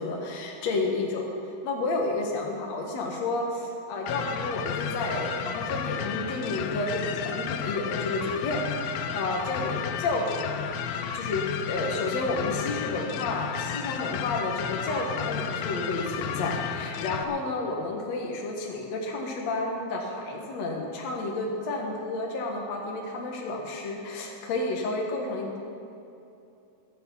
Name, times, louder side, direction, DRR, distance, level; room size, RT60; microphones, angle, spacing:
voice 1, 0.0-3.4 3.9-25.6, left 2 dB, 55° left, 0 dB, 2.2 m, -31 dB
sound 1, 4.1-17.2, left 8 dB, 80° left, 2.4 m, -33 dB
23.5 x 8.3 x 5.6 m, 2.8 s
omnidirectional pair, 4.5 m